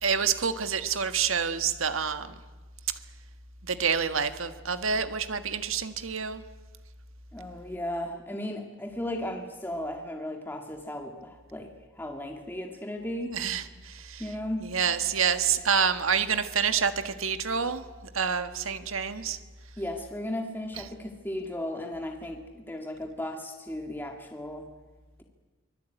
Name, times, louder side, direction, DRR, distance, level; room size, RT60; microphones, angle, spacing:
voice 1, 0.0-2.3 3.6-6.4 13.3-14.2 14.6-17.8 18.1-19.4, right 6 dB, 75° right, 9 dB, 1.6 m, -27 dB
voice 2, 7.3-13.4 14.2-14.7 19.8-24.7, left 1 dB, 10° left, 3 dB, 2.1 m, -35 dB
25.0 x 20.0 x 9.2 m, 1.3 s
head